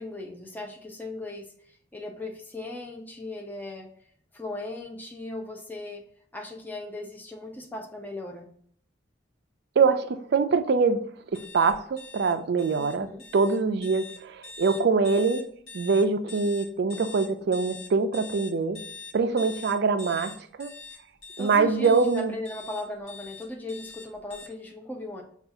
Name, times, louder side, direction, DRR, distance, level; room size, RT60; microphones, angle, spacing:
voice 1, 0.0-3.9 4.3-6.0 6.3-8.5 12.7-13.3 21.4-25.2, left 2 dB, 10° left, 2 dB, 0.5 m, -38 dB
voice 2, 9.8-11.0 11.3-15.4 15.7-18.8 19.1-20.3 20.6-20.7 21.4-22.3, right 4 dB, 60° right, 10 dB, 0.4 m, -24 dB
sound 1, 11.3-24.5, left 5 dB, 75° left, 0.9 m, -44 dB
5.5 x 2.4 x 2.7 m, 0.62 s
head